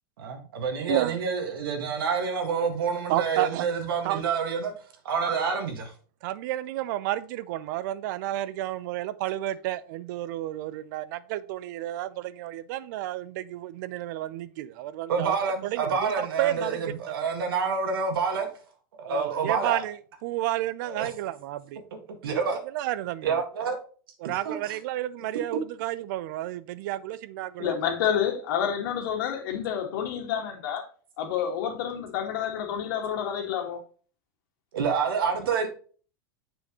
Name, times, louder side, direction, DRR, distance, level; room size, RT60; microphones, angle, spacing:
voice 1, 0.2-4.7 5.1-5.9 15.1-18.5 19.0-19.8 20.9-21.1 22.2-22.6 23.2-23.8 24.5-24.8 34.7-35.7, right 5 dB, 90° right, 1.8 m, -28 dB
voice 2, 0.9-1.2 3.1-3.7 4.0-4.2 6.2-15.4 15.6-16.9 19.1-21.8 22.4-23.4 24.2-27.8, right 14 dB, 60° right, 0.5 m, -31 dB
voice 3, 27.6-30.8 31.2-33.8, left 8 dB, 70° left, 1.9 m, -29 dB
7.0 x 5.7 x 3.0 m
supercardioid pair, 135°, 12 cm